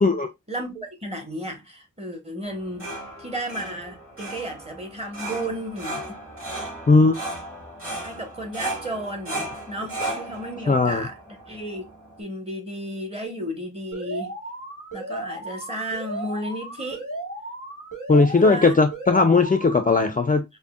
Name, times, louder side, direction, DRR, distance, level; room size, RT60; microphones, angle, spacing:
voice 1, 0.5-2.9 3.2-6.2 8.0-11.1 11.5-11.9 12.2-14.3 14.9-17.0 18.4-18.8, right 1 dB, 20° right, 1.2 m, -33 dB
sound 1, 2.4-12.2, right 2 dB, 45° right, 2.4 m, -35 dB
voice 2, 10.7-11.0 18.1-20.4, left 3 dB, 25° left, 0.4 m, -18 dB
Alarm, 13.9-19.9, right 2 dB, 75° right, 1.6 m, -35 dB
5.3 x 2.1 x 2.3 m
wide cardioid pair, 65°, 31 cm